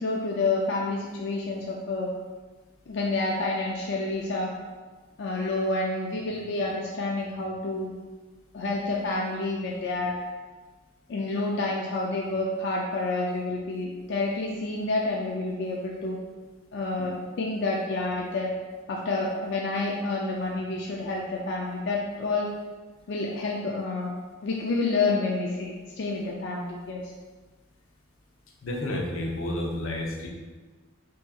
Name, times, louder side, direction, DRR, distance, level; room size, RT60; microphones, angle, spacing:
voice 1, 0.0-2.1 2.9-4.5 5.2-7.9 8.5-10.2 11.1-16.2 16.7-18.5 18.9-22.5 23.1-24.1 24.4-27.1, left 3 dB, 60° left, -2 dB, 0.4 m, -29 dB
voice 2, 28.6-30.3, left 1 dB, 85° left, -1 dB, 0.7 m, -30 dB
5.3 x 2.7 x 2.3 m, 1.3 s
head